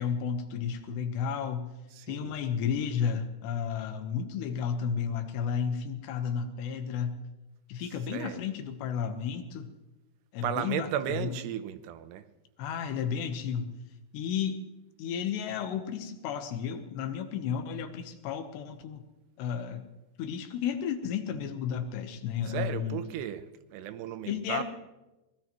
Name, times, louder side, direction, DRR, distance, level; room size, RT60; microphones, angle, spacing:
voice 1, 0.0-1.7 2.1-7.2 7.7-9.7 10.3-11.4 12.6-13.7 14.1-14.6 15.0-19.0 19.4-19.9 20.2-23.0 24.3-24.6, left 7 dB, 80° left, 3.3 m, -32 dB
voice 2, 1.9-2.4 8.1-8.4 10.4-12.3 22.4-24.6, right 10 dB, 80° right, 2.8 m, -35 dB
23.0 x 20.5 x 3.1 m
omnidirectional pair, 4.9 m